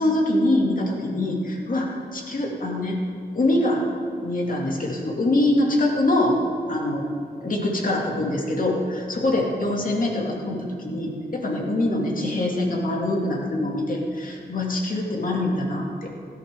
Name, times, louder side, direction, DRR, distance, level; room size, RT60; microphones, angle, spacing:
voice 1, 0.0-3.0 3.4-3.8 4.2-6.4 6.7-7.0 7.4-16.1, left 1 dB, 55° left, -1 dB, 2.3 m, -24 dB
16.5 x 10.5 x 3.6 m, 2.4 s
wide cardioid pair, 75°, 17 cm